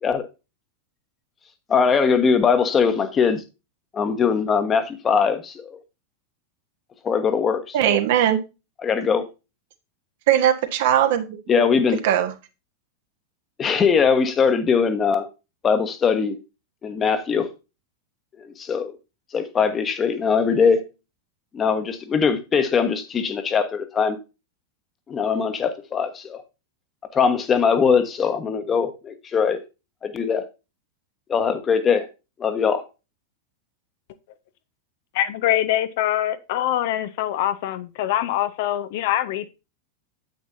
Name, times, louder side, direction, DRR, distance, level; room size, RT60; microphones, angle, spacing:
voice 1, 1.7-3.4 3.9-5.8 7.0-8.0 8.9-9.2 11.5-12.0 13.6-15.3 15.6-16.4 16.8-17.5 18.4-18.9 19.3-20.8 21.5-24.2 25.1-26.4 27.1-29.6 30.0-30.5 31.3-32.1 32.4-32.8, left 6 dB, 25° left, 1.3 m, -21 dB
voice 2, 7.7-8.4 10.3-11.4 12.0-12.3, right 11 dB, 55° right, 1.3 m, -19 dB
voice 3, 35.1-39.5, left 12 dB, 50° left, 0.8 m, -24 dB
9.2 x 8.6 x 2.7 m
figure-of-eight pair, 90°, 0 cm